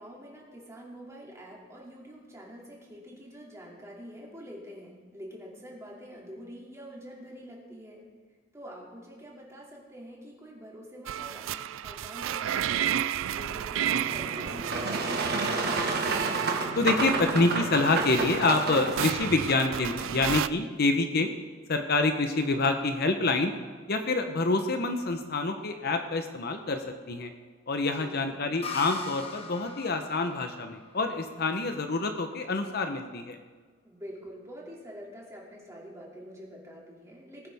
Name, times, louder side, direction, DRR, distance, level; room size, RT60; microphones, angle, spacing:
voice 1, 0.0-8.1 8.5-12.9 13.3-15.7 28.0-28.4 33.8-37.5, equal, 15° right, -3 dB, 2.6 m, -46 dB
sound 1, 11.1-20.5, right 10 dB, 80° right, 0.4 m, -32 dB
Boat Water vehicle, 14.0-19.1, right 3 dB, 55° right, 1.4 m, -30 dB
voice 2, 16.7-21.3 21.7-23.5 23.9-27.3 27.7-33.4, left 3 dB, 55° left, 6 dB, 0.9 m, -27 dB
sound 2, 28.6-32.2, left 4 dB, 30° left, 1.1 m, -42 dB
20.0 x 9.4 x 3.6 m, 1.4 s
head